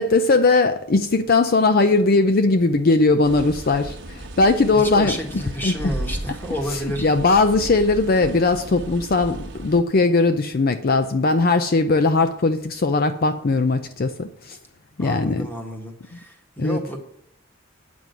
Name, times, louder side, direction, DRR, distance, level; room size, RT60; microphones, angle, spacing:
voice 1, 0.0-5.7 6.7-14.6 15.0-15.5 16.6-16.8, left 3 dB, 45° left, 0.5 m, -19 dB
sound 1, 3.2-9.8, right 1 dB, 60° right, 1.1 m, -35 dB
voice 2, 4.7-7.1 15.0-17.0, equal, 10° left, 1.6 m, -31 dB
9.0 x 6.2 x 8.2 m
head